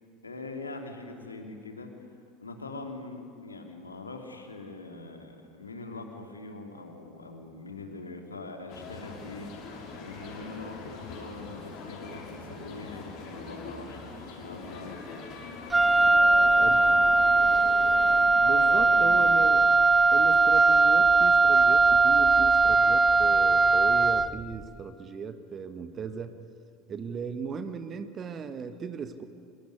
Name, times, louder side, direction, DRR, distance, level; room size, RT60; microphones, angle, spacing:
voice 1, 0.2-1.9 2.4-9.5 9.9-15.0 15.9-17.1 18.4-19.3, left 3 dB, 80° left, 4 dB, 3.1 m, -42 dB
sound 1, 8.7-18.3, left 4 dB, 45° left, 5.7 m, -43 dB
Wind instrument woodwind instrument, 15.7-24.4, right 3 dB, 10° right, 0.7 m, -20 dB
voice 2, 18.3-19.6 20.1-26.3 26.9-29.2, right 6 dB, 30° right, 10 dB, 1.6 m, -37 dB
25.5 x 22.0 x 9.9 m, 2.4 s
figure-of-eight pair, 75°, 0 cm